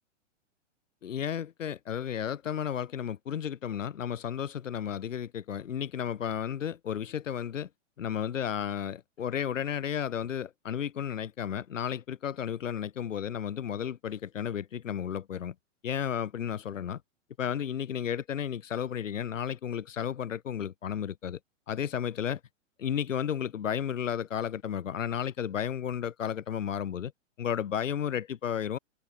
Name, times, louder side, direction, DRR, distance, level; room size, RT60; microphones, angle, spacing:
voice 1, 1.0-7.7 8.0-15.5 15.8-17.0 17.4-21.4 21.7-22.4 22.8-27.1 27.4-28.8, left 9 dB, 80° left, 8.0 m, -33 dB
open air
hypercardioid pair, 135°, 38 cm